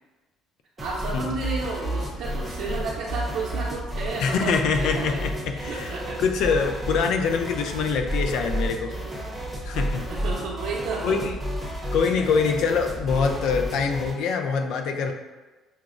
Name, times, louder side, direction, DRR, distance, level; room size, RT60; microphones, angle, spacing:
sound 1, 0.8-14.2, equal, 5° right, 0.6 m, -31 dB
voice 1, 0.8-5.1 5.5-6.2 9.6-9.8 10.1-11.2 11.8-12.3, right 3 dB, 70° right, -6 dB, 0.6 m, -32 dB
voice 2, 4.2-5.9 6.2-8.9 9.7-10.1 11.0-11.4 11.9-15.1, left 5 dB, 65° left, 5 dB, 0.4 m, -24 dB
5.8 x 2.0 x 2.5 m, 1.2 s
cardioid pair, 165°, 0 cm